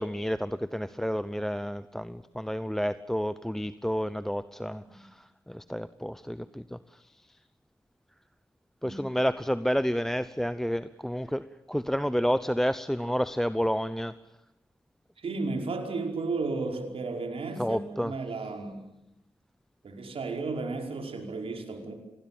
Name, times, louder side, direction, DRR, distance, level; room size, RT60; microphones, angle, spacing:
voice 1, 0.0-5.1 5.5-6.8 8.8-14.1 17.6-18.1, equal, 5° left, 15 dB, 0.8 m, -30 dB
voice 2, 15.2-18.9 19.8-21.9, right 3 dB, 65° right, 3 dB, 5.2 m, -33 dB
25.5 x 19.5 x 8.8 m, 0.93 s
supercardioid pair, 45°, 10 cm